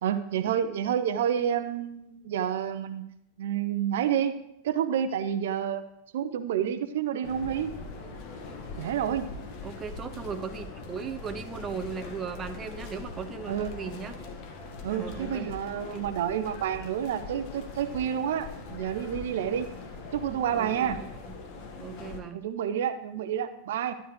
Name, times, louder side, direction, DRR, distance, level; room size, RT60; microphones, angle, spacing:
voice 1, 0.0-3.0 3.4-4.4 4.6-5.8 6.1-7.7 8.8-9.3 13.5-13.8 14.8-19.7 20.1-21.0 22.3-23.9, right 9 dB, 55° right, 11 dB, 0.7 m, -29 dB
sound 1, 7.2-22.2, left 3 dB, 45° left, 1.7 m, -42 dB
voice 2, 9.6-14.2 15.0-15.5 15.9-16.1 20.5-21.3 21.8-22.4, right 6 dB, 20° right, 9 dB, 0.7 m, -37 dB
13.0 x 10.0 x 3.3 m, 0.82 s
figure-of-eight pair, 90°, 0 cm